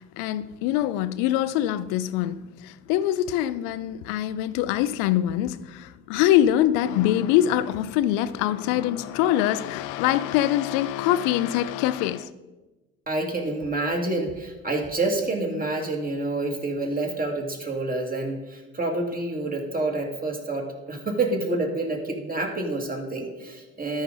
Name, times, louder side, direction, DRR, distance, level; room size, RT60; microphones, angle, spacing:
voice 1, 0.0-12.3, left 12 dB, 80° left, 0.5 m, -24 dB
voice 2, 13.1-24.0, right 2 dB, 25° right, 2.2 m, -28 dB
13.0 x 5.3 x 3.9 m
hypercardioid pair, 65°, 34 cm